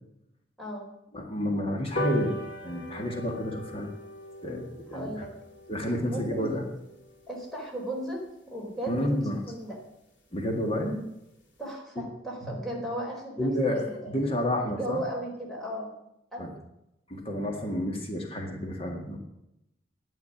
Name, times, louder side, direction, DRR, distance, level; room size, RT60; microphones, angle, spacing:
voice 1, 1.1-3.9 4.4-5.3 5.7-6.6 8.9-9.4 10.3-11.0 12.4-12.6 13.4-15.1 16.4-16.5 17.1-19.2, left 1 dB, 35° left, 2 dB, 1.9 m, -30 dB
sound 1, 2.0-8.7 9.1-9.2 9.5-9.7 9.9-10.0 10.3-10.4 10.7-11.0 11.4-11.5, equal, 90° left, 3.2 m, -39 dB
voice 2, 4.9-5.3 6.0-6.6 7.3-8.2 8.5-9.8 11.6-14.0 14.6-15.9 16.3-16.5, right 1 dB, ahead, -3 dB, 4.2 m, -36 dB
10.5 x 7.8 x 9.7 m, 0.85 s
head